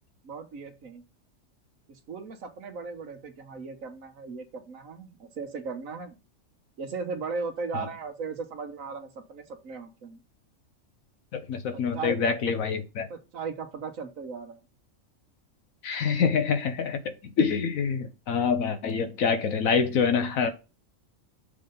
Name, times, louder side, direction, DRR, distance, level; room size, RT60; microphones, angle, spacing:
voice 1, 0.2-1.0 1.9-6.2 6.8-10.2 11.9-12.2 13.1-14.6, right 4 dB, 80° right, 1.5 m, -37 dB
voice 2, 11.3-13.1 15.8-20.5, left 6 dB, 90° left, 1.3 m, -26 dB
6.7 x 3.8 x 5.2 m
omnidirectional pair, 1.4 m